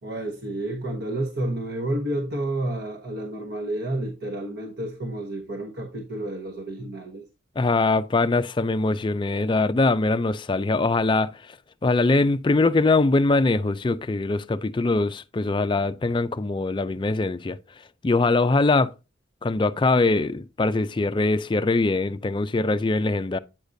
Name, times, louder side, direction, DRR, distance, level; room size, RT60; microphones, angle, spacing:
voice 1, 0.0-7.2, right 1 dB, 55° right, 1.1 m, -30 dB
voice 2, 7.6-11.4 11.8-17.6 18.0-18.9 19.4-23.4, left 3 dB, 25° left, 0.3 m, -22 dB
8.9 x 6.6 x 2.6 m
head